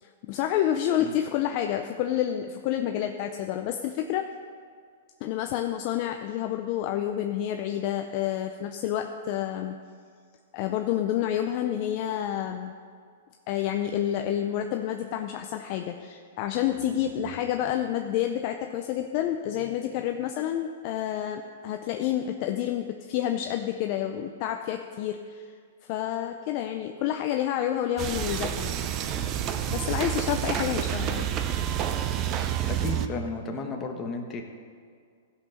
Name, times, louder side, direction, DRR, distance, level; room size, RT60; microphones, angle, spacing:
voice 1, 0.0-4.3 5.2-9.7 10.5-12.7 13.5-25.4 25.9-28.7 29.7-31.3, left 11 dB, 35° left, 5 dB, 0.5 m, -29 dB
sound 1, 28.0-33.1, right 10 dB, 25° right, 0.5 m, -29 dB
voice 2, 32.7-34.4, left 3 dB, 15° left, 2 dB, 1.1 m, -33 dB
15.5 x 5.5 x 6.5 m, 2.1 s
hypercardioid pair, 165°, 0 cm